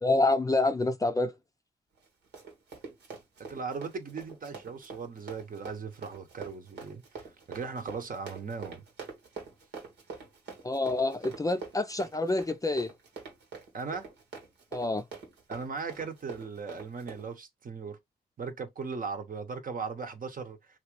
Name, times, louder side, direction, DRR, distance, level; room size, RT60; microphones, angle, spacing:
voice 1, 0.0-1.3 10.6-12.9 14.7-15.0, left 2 dB, 20° left, 0.4 m, -27 dB
Run, 2.0-17.3, right 5 dB, 90° right, 1.2 m, -45 dB
voice 2, 3.4-8.8 13.7-14.1 15.5-18.0 18.4-20.8, right 5 dB, 55° right, 0.9 m, -38 dB
2.9 x 2.4 x 3.0 m
cardioid pair, 55°, 17 cm